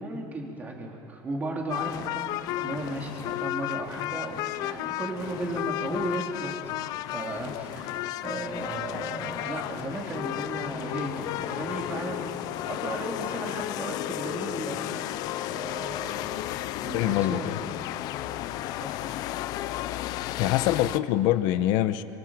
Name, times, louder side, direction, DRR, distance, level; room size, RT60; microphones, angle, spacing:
voice 1, 0.0-2.2 2.6-15.1 15.5-16.5 16.8-17.5 18.3-18.4 18.6-19.1, right 2 dB, 20° right, 0 dB, 3.6 m, -35 dB
sound 1, 1.7-21.0, left 14 dB, 55° left, 0.6 m, -33 dB
voice 2, 16.9-17.6 20.4-22.0, left 13 dB, 70° left, 12 dB, 1.0 m, -24 dB
29.5 x 25.0 x 7.5 m, 2.7 s
cardioid pair, 170°, 8 cm